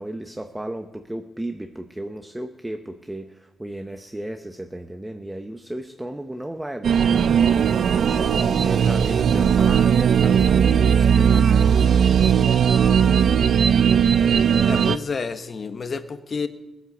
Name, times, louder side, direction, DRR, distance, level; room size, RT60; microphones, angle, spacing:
voice 1, 0.0-7.3 7.9-11.7, right 1 dB, 5° right, 7 dB, 0.6 m, -34 dB
sound 1, 6.8-15.0, right 7 dB, 50° right, 0.4 m, -18 dB
voice 2, 14.6-16.5, left 5 dB, 30° left, 10 dB, 0.9 m, -29 dB
18.5 x 9.6 x 7.0 m, 1.1 s
cardioid pair, 150°, 0 cm